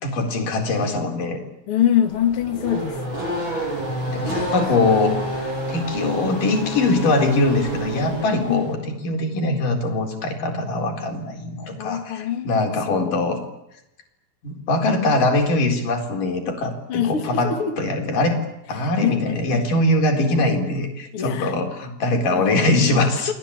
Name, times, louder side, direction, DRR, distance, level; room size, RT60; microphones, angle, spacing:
voice 1, 0.0-1.4 4.1-13.4 14.4-18.4 18.7-23.3, left 2 dB, 45° left, 3 dB, 5.1 m, -22 dB
voice 2, 1.7-3.0 8.5-8.6 11.8-13.2 16.9-17.8 19.0-19.7 21.1-21.5 22.3-22.7 23.3-23.4, left 10 dB, 80° left, 7 dB, 1.2 m, -24 dB
Race car auto racing / Accelerating revving vroom, 2.0-8.7, right 1 dB, 25° right, 8.3 m, -28 dB
30.0 x 21.5 x 8.6 m, 0.87 s
omnidirectional pair, 5.9 m